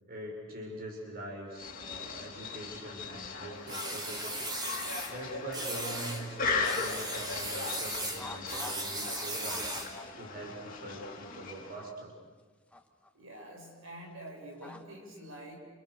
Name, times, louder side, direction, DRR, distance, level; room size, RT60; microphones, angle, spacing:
voice 1, 0.1-4.5 5.1-12.1, right 1 dB, 45° right, 0 dB, 6.6 m, -43 dB
sound 1, 1.5-11.9, left 4 dB, 40° left, 3.7 m, -38 dB
sound 2, 3.7-5.1 5.5-6.2 6.6-10.0, right 1 dB, 20° right, 3.5 m, -37 dB
sound 3, 8.2-8.9 9.1-10.4 10.7-10.8 11.8-11.9 12.7-13.1 14.6-14.8, left 2 dB, 5° left, 1.6 m, -46 dB
voice 2, 13.1-15.6, right 1 dB, 75° right, 0 dB, 6.5 m, -46 dB
30.0 x 28.5 x 6.8 m, 1.4 s
head